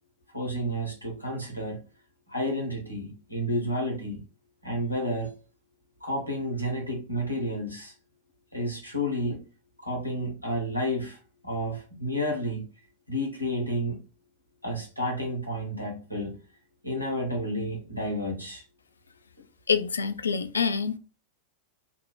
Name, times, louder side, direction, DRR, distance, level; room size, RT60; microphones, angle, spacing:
voice 1, 0.3-1.8 2.3-4.2 4.6-5.3 6.0-7.9 8.5-9.4 9.8-11.2 11.4-12.7 13.1-14.0 14.6-16.4 16.8-18.6, equal, 90° right, 1.0 m, -31 dB
voice 2, 19.7-21.0, left 6 dB, 75° left, 0.3 m, -26 dB
2.6 x 2.1 x 3.1 m
figure-of-eight pair, 90°, 0 cm